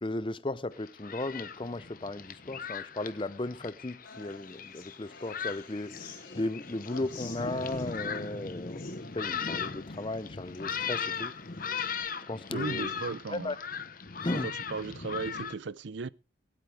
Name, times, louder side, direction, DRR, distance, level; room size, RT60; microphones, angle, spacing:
voice 1, 0.0-8.8 9.1-11.3 11.6-11.8 12.3-12.9 13.3-13.6 14.2-14.5, left 2 dB, 25° left, 0.6 m, -36 dB
Thunderstorm, 0.7-15.5, left 6 dB, 45° left, 0.9 m, -38 dB
Human voice / Acoustic guitar, 4.0-12.0, left 3 dB, 80° left, 4.5 m, -50 dB
voice 2, 12.5-13.6 14.3-16.1, right 4 dB, 65° right, 0.5 m, -36 dB
23.5 x 8.9 x 3.4 m
head